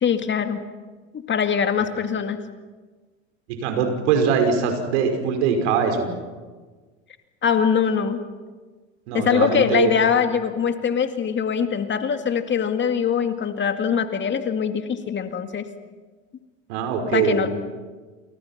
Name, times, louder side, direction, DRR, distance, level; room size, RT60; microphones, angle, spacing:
voice 1, 0.0-0.6 1.3-2.4 7.4-8.2 9.1-15.6 17.1-17.5, left 7 dB, 30° left, 7 dB, 2.2 m, -22 dB
voice 2, 3.5-6.1 9.1-9.9 16.7-17.4, right 6 dB, 65° right, 5 dB, 5.8 m, -22 dB
30.0 x 28.0 x 6.0 m, 1.4 s
hypercardioid pair, 85°, 38 cm